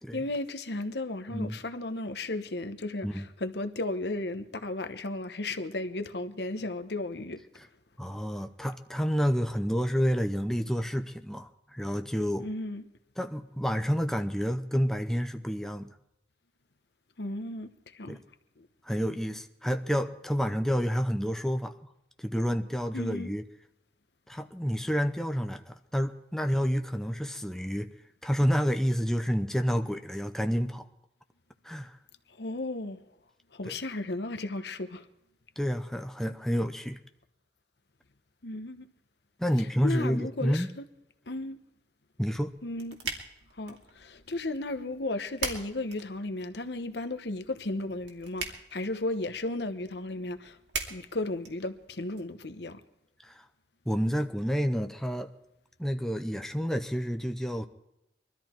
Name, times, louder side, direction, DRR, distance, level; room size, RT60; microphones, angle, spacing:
voice 1, 0.1-7.4 12.4-12.8 17.2-17.7 17.9-18.2 22.9-23.3 32.4-33.0 33.5-35.0 38.4-38.8 39.8-40.8 41.3-41.6 42.6-43.0 43.6-50.6 50.9-52.8, left 2 dB, 70° left, 1.1 m, -34 dB
voice 2, 1.3-1.6 3.0-3.3 7.5-7.7 8.0-12.5 13.2-15.9 18.1-18.2 18.8-21.8 22.2-23.5 24.3-27.9 28.2-30.9 31.6-32.0 33.6-33.7 35.6-37.0 39.4-40.7 42.2-42.5 53.2-53.5 53.9-55.3 55.8-57.7, equal, 5° left, 0.7 m, -29 dB
sound 1, 42.3-52.2, right 5 dB, 80° right, 2.4 m, -42 dB
22.0 x 13.0 x 4.5 m
head